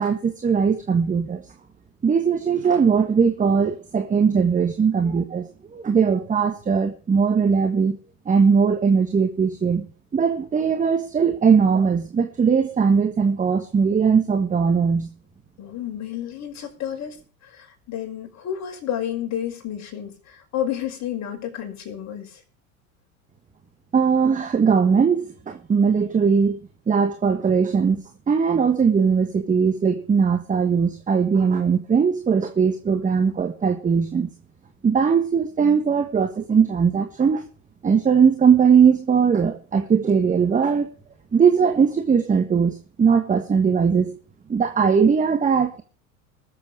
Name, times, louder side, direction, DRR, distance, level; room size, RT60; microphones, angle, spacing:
voice 1, 0.0-1.4 2.0-8.0 8.2-9.9 10.1-15.1 23.9-26.6 26.9-34.3 34.8-37.5 37.8-40.9 41.3-44.2 44.5-45.8, right 6 dB, 20° right, 1.4 m, -20 dB
voice 2, 15.6-22.4, left 10 dB, 40° left, 5.6 m, -31 dB
20.0 x 7.8 x 5.0 m
figure-of-eight pair, 80°, 42 cm